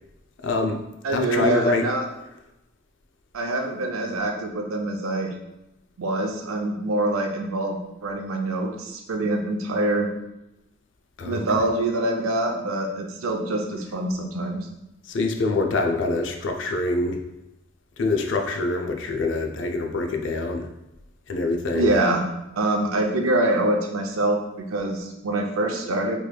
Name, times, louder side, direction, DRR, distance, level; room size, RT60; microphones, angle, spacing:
voice 1, 0.4-0.8 1.1-1.9 11.2-11.4 15.0-17.2 18.0-20.7 21.3-21.9, left 3 dB, 60° left, 4 dB, 0.4 m, -25 dB
voice 2, 1.0-2.0 3.3-5.3 6.0-10.1 11.2-14.7 21.7-22.2 22.6-26.2, right 2 dB, 85° right, 3 dB, 0.5 m, -25 dB
3.3 x 3.0 x 2.2 m, 0.91 s
head